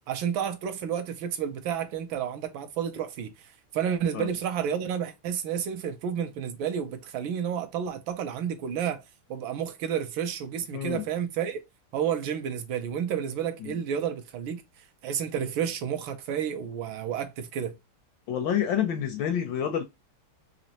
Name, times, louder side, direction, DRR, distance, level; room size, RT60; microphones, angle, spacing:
voice 1, 0.1-9.0 9.3-11.6 11.9-14.6 15.0-17.8, right 8 dB, 75° right, 1.3 m, -31 dB
voice 2, 10.7-11.0 13.6-13.8 18.3-19.8, left 9 dB, 75° left, 1.1 m, -28 dB
4.2 x 2.9 x 2.7 m
omnidirectional pair, 2.4 m